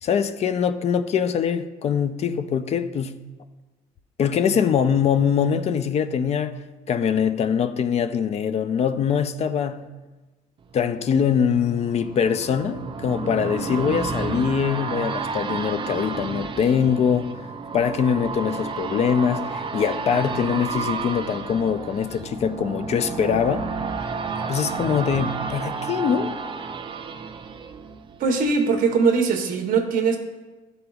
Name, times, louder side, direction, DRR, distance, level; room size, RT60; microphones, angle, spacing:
voice 1, 0.0-3.2 4.2-6.6 6.9-9.9 10.7-17.4 17.7-23.7 24.5-26.3, left 7 dB, 40° left, 0.4 m, -23 dB
sound 1, 10.7-28.5 28.9-29.0, right 5 dB, 30° right, 0.4 m, -31 dB
voice 2, 28.2-30.2, right 5 dB, 55° right, 0.9 m, -21 dB
11.0 x 3.9 x 2.3 m
cardioid pair, 110°, 17 cm